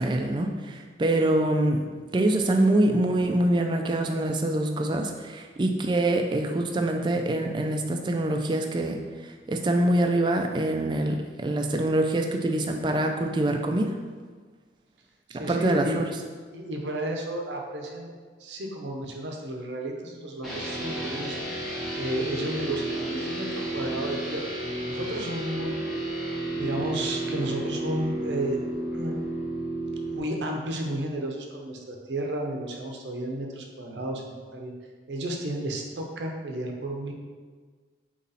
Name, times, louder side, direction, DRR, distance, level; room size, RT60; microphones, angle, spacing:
voice 1, 0.0-1.8 2.1-9.0 9.5-11.2 11.4-13.9 15.3-16.0, right 1 dB, 25° right, 3 dB, 0.3 m, -24 dB
voice 2, 15.3-16.0 16.5-21.4 22.0-24.5 24.9-25.8 26.6-28.6 28.9-29.2 30.1-34.7 35.1-37.1, right 1 dB, 85° right, 1 dB, 0.7 m, -32 dB
sound 1, 20.4-30.2, right 1 dB, ahead, 0.8 m, -32 dB
4.0 x 3.0 x 4.0 m, 1.5 s
head